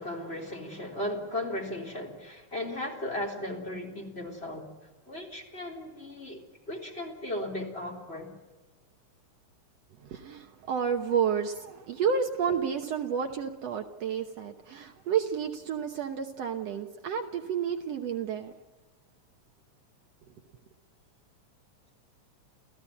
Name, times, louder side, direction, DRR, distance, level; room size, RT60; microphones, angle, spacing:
voice 1, 0.0-4.7 5.1-8.3, left 1 dB, 20° left, 3.6 m, -36 dB
voice 2, 10.0-18.5, right 7 dB, 65° right, 2.0 m, -30 dB
29.5 x 15.5 x 9.8 m
omnidirectional pair, 3.4 m